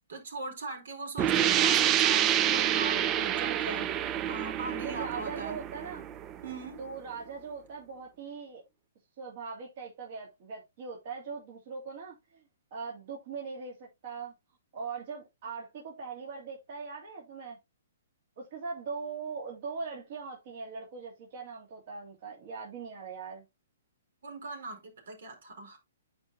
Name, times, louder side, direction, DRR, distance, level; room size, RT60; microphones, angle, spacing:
voice 1, 0.1-3.9 4.3-5.6 6.4-6.8 24.2-25.8, right 2 dB, 75° right, 4.5 m, -40 dB
sound 1, 1.2-6.7, right 11 dB, 25° right, 0.5 m, -28 dB
voice 2, 1.3-1.9 3.4-3.9 4.8-6.0 6.8-8.6 9.2-12.4 12.7-14.3 14.7-17.6 18.4-23.4, right 5 dB, 50° right, 3.0 m, -41 dB
9.5 x 5.1 x 2.9 m
hypercardioid pair, 150°, 0 cm